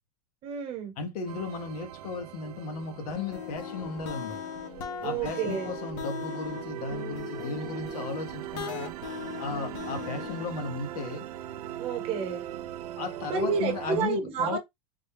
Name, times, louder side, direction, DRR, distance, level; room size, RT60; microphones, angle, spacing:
voice 1, 0.4-0.9 5.0-5.7 11.8-12.5 13.3-14.6, right 5 dB, 30° right, 1.0 m, -30 dB
voice 2, 1.0-4.4 5.0-8.9 9.4-11.2 13.0-14.6, left 4 dB, 80° left, 1.2 m, -35 dB
sound 1, 1.3-14.1, right 12 dB, 85° right, 0.5 m, -40 dB
sound 2, 3.1-10.7, left 8 dB, 60° left, 0.9 m, -39 dB
4.0 x 2.3 x 3.3 m
supercardioid pair, 170°, 19 cm